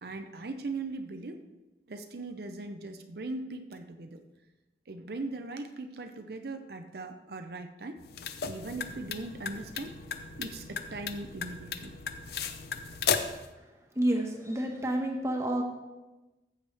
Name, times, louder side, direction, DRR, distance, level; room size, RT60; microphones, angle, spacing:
voice 1, 0.0-1.4 1.9-4.2 4.9-8.0 8.5-10.0 10.4-12.0, right 3 dB, 60° right, 7 dB, 0.7 m, -39 dB
sound 1, 8.0-13.5, left 6 dB, 60° left, 0.7 m, -35 dB
voice 2, 13.9-15.6, right 1 dB, 15° right, 2 dB, 1.3 m, -29 dB
14.5 x 7.9 x 3.4 m, 1.1 s
head